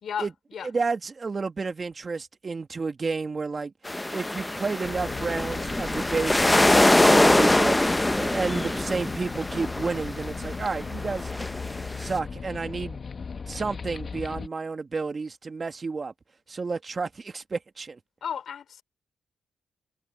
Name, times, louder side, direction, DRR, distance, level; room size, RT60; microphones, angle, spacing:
voice 1, 0.0-0.7 18.2-18.8, left 8 dB, 70° left, 4.5 m, -34 dB
voice 2, 0.6-3.7 4.1-7.8 8.1-11.3 12.0-13.0 13.5-16.1 16.5-18.0, right 4 dB, 40° right, 2.1 m, -31 dB
sound 1, 3.8-12.1, left 1 dB, 15° left, 0.7 m, -23 dB
sound 2, 4.8-14.5, left 5 dB, 50° left, 1.5 m, -37 dB
supercardioid pair, 55°, 0 cm